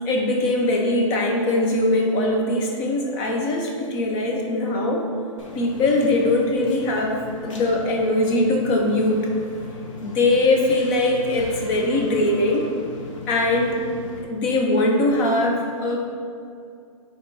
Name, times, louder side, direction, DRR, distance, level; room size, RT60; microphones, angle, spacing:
voice 1, 0.0-5.0 5.5-9.3 10.0-12.7 13.3-13.8 14.2-16.1, left 2 dB, 30° left, 0 dB, 1.0 m, -21 dB
sound 1, 5.4-14.2, left 2 dB, 65° left, 1.3 m, -39 dB
5.0 x 4.1 x 5.5 m, 2.3 s
hypercardioid pair, 150°, 17 cm